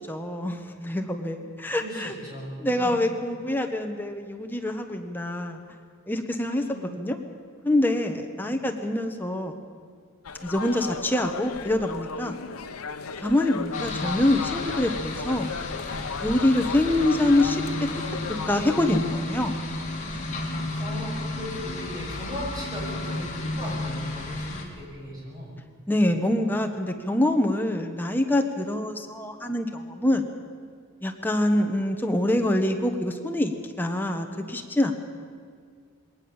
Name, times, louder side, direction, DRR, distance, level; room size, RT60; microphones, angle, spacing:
voice 1, 0.1-2.1 2.6-5.6 6.1-6.6 7.0-7.2 7.6-9.6 10.4-12.4 13.2-15.5 16.2-17.6 18.5-19.6 25.9-30.3 31.0-34.9, left 1 dB, 10° left, 4 dB, 1.2 m, -25 dB
voice 2, 1.7-3.0 6.5-7.0 8.4-8.6 20.8-25.5 25.9-26.0, equal, 20° right, -4 dB, 7.1 m, -37 dB
sound 1, 10.2-19.0, left 5 dB, 85° left, 0.8 m, -36 dB
sound 2, 13.7-24.6, left 2 dB, 35° left, 2.9 m, -33 dB
22.0 x 18.5 x 7.2 m, 2.1 s
head